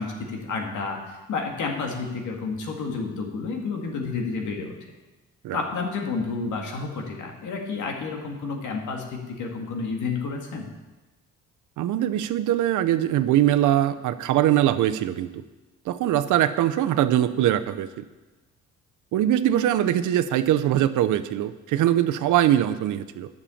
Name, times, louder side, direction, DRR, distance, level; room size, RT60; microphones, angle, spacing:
voice 1, 0.0-4.8 5.5-10.7, left 4 dB, 75° left, 1 dB, 2.1 m, -30 dB
voice 2, 11.8-15.4 15.9-18.0 19.1-23.3, right 12 dB, 80° right, 11 dB, 0.7 m, -22 dB
10.0 x 6.7 x 7.1 m, 1.2 s
cardioid pair, 90°, 30 cm